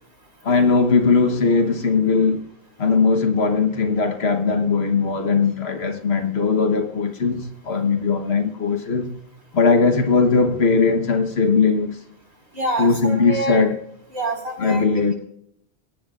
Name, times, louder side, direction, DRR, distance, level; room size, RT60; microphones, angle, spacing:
voice 1, 0.4-2.4 2.8-9.1 9.5-12.0 12.8-13.8 14.6-15.1, left 4 dB, 70° left, 1.4 m, -19 dB
voice 2, 12.5-13.7 14.1-15.1, right 2 dB, 80° right, 5.2 m, -27 dB
21.0 x 17.5 x 2.5 m
omnidirectional pair, 1.1 m